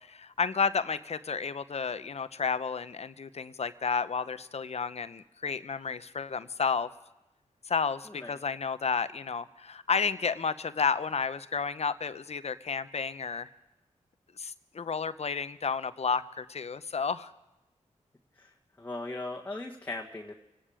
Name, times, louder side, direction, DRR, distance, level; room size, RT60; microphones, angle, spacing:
voice 1, 0.1-6.9 7.7-13.5 14.4-17.3, left 5 dB, 55° left, 13 dB, 0.8 m, -31 dB
voice 2, 8.1-8.4 18.4-18.5 18.8-20.3, left 2 dB, 15° left, -2 dB, 1.5 m, -38 dB
26.0 x 10.0 x 5.0 m, 0.95 s
cardioid pair, 55°, 13 cm